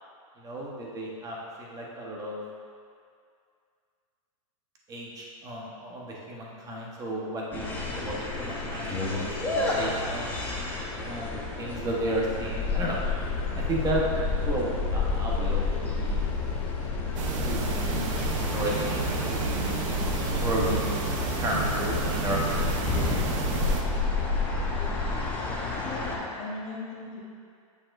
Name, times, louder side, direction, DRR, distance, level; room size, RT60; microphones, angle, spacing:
voice 1, 0.4-2.4 4.9-10.3 11.0-13.0 13.5-14.0 14.3-16.3 17.4-19.8 20.4-21.1 21.3-22.7 23.0-23.3, right 1 dB, 20° right, -3 dB, 1.2 m, -33 dB
sound 1, 7.5-26.2, left 3 dB, 10° left, 0.9 m, -30 dB
sound 2, 13.2-25.2, left 9 dB, 75° left, 0.4 m, -38 dB
sound 3, 17.2-23.8, right 5 dB, 60° right, 0.9 m, -30 dB
voice 2, 25.8-27.2, left 3 dB, 35° left, -6 dB, 1.2 m, -38 dB
8.7 x 7.0 x 2.6 m, 2.3 s
supercardioid pair, 145°, 19 cm